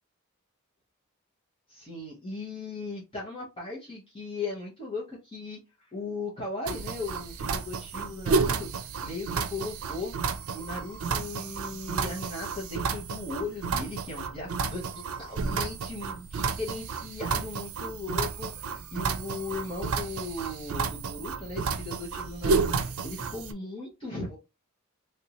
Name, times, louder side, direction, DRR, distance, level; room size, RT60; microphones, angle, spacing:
voice 1, 1.7-5.6 5.9-10.1 10.5-24.4, left 3 dB, 25° left, -5 dB, 1.1 m, -37 dB
sound 1, 6.7-23.5, right 5 dB, 80° right, 0.5 m, -31 dB
3.4 x 2.7 x 2.9 m, 0.25 s
head